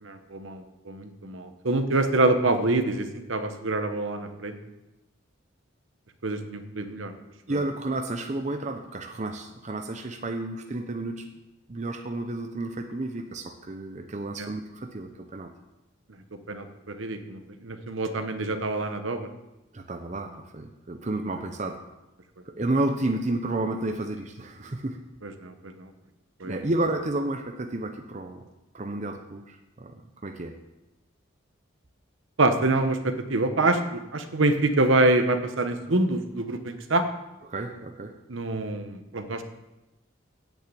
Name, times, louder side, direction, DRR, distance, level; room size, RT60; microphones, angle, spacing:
voice 1, 0.0-4.5 6.2-7.1 7.5-7.6 14.4-14.5 16.5-19.3 25.2-25.9 26.4-26.7 32.4-37.0 38.3-39.4, right 2 dB, 70° right, 8 dB, 1.0 m, -26 dB
voice 2, 7.5-11.2 11.7-15.5 19.7-21.8 22.5-25.0 26.4-28.4 28.7-30.0 30.2-30.5 37.5-38.1, right 2 dB, 35° right, 4 dB, 0.6 m, -31 dB
8.6 x 6.4 x 8.5 m, 0.99 s
head